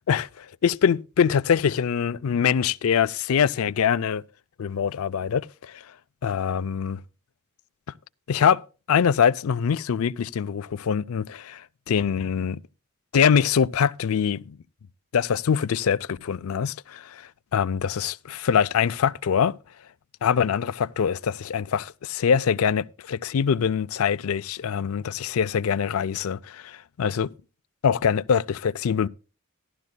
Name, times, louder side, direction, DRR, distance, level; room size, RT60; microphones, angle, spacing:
voice 1, 0.1-4.2 4.6-5.8 6.2-7.0 8.3-12.6 13.1-14.6 15.1-17.2 17.5-19.5 20.2-27.3 27.8-29.1, left 7 dB, 70° left, 0.4 m, -24 dB
15.0 x 12.0 x 2.2 m
head